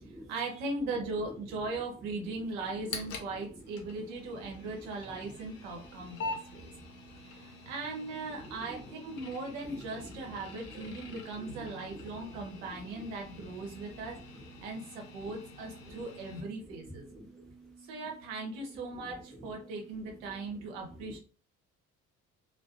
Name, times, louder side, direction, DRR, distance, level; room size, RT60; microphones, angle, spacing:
voice 1, 0.3-6.7 7.2-14.2 14.6-17.1 17.8-21.2, right 3 dB, 65° right, 1 dB, 0.9 m, -39 dB
sound 1, 2.6-16.4, left 3 dB, 75° left, 0.6 m, -46 dB
voice 2, 6.2-7.7 11.6-12.0 15.8-16.0 17.1-18.0 20.2-20.3 21.0-21.1, right 2 dB, ahead, 0 dB, 0.6 m, -52 dB
2.3 x 2.1 x 2.6 m, 0.39 s
figure-of-eight pair, 50°, 42 cm